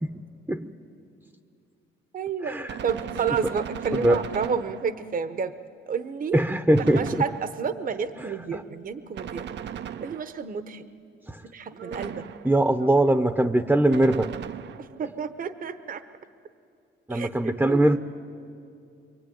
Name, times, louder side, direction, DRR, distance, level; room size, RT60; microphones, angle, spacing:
voice 1, 2.1-2.6 2.8-5.5 5.9-6.4 6.9-9.5 10.0-10.9 11.5-12.3 14.8-16.0 17.1-17.3 17.7-17.9, right 6 dB, 45° right, 11 dB, 1.0 m, -30 dB
Gunshot gunfire, 2.7-5.2 6.7-7.8 9.1-10.6 11.9-12.7 13.9-15.1, right 9 dB, 65° right, 0.7 m, -37 dB
voice 2, 6.3-7.2 8.2-8.6 11.3-11.4 12.4-14.3 17.1-18.0, right 1 dB, 5° right, 9 dB, 0.8 m, -22 dB
sound 1, 6.8-9.3 10.6-11.1 11.5-12.3 12.7-13.2 13.5-13.6, right 4 dB, 80° right, 2.1 m, -47 dB
24.0 x 23.0 x 9.4 m, 2.4 s
cardioid pair, 90°, 20 cm